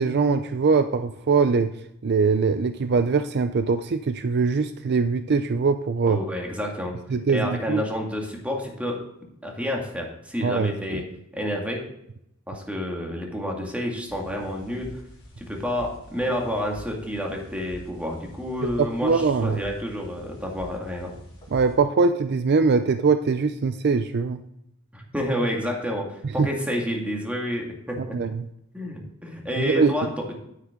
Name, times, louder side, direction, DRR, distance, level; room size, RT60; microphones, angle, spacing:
voice 1, 0.0-1.7 2.0-6.2 7.1-7.8 10.4-11.0 19.0-19.6 21.5-24.4 26.4-26.5 28.1-28.4 29.6-29.9, right 4 dB, 50° right, 10 dB, 0.5 m, -22 dB
voice 2, 6.0-7.0 7.3-9.0 9.4-11.0 11.3-11.8 12.5-14.9 15.4-21.1 24.9-28.2 28.7-30.4, equal, 5° right, 0 dB, 2.0 m, -29 dB
sound 1, 14.1-21.8, equal, 25° left, 3.3 m, -45 dB
9.7 x 9.2 x 3.7 m, 0.78 s
head